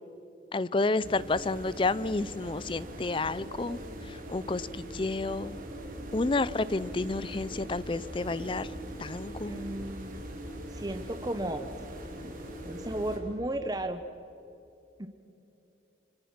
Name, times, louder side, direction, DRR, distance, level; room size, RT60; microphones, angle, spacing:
voice 1, 0.5-3.8 4.3-4.7 4.9-5.6 6.1-8.7 9.0-9.6, left 3 dB, 25° left, 18 dB, 0.4 m, -30 dB
sound 1, 1.0-13.2, right 1 dB, 45° right, 3.8 m, -41 dB
voice 2, 9.4-10.3 10.7-11.8 12.6-14.0 15.0-15.1, right 1 dB, 20° right, 7 dB, 0.8 m, -34 dB
26.5 x 25.0 x 5.9 m, 2.8 s
head